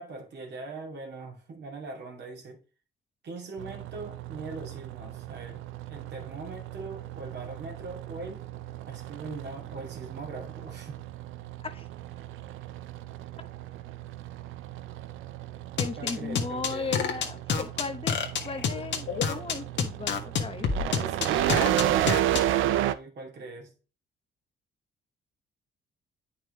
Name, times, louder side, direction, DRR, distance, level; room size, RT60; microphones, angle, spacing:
voice 1, 0.0-2.6 3.2-5.6 5.9-8.4 8.9-11.0 16.0-17.0 20.8-23.7, right 3 dB, 60° right, 2.4 m, -40 dB
sound 1, 3.6-22.9, right 12 dB, 85° right, 0.5 m, -33 dB
sound 2, 15.8-22.4, left 6 dB, 65° left, 1.4 m, -27 dB
voice 2, 15.8-18.2 18.4-20.8, left 4 dB, 30° left, 1.0 m, -36 dB
8.9 x 5.5 x 3.1 m
cardioid pair, 90°, 20 cm